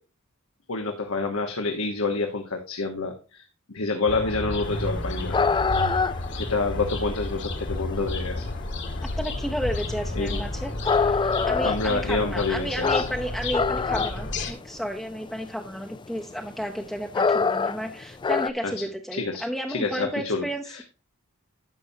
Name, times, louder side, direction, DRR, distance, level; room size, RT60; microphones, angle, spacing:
voice 1, 0.7-5.5 6.3-8.4 10.1-10.4 11.6-12.9 18.6-18.8 19.1-20.8, left 3 dB, 80° left, 3 dB, 1.2 m, -28 dB
sound 1, 4.1-14.5, left 1 dB, 60° left, 1.6 m, -32 dB
sound 2, 4.8-18.5, left 5 dB, 20° left, 0.3 m, -27 dB
voice 2, 9.2-20.6, equal, ahead, 1 dB, 0.7 m, -32 dB
11.5 x 7.0 x 2.8 m, 0.34 s
head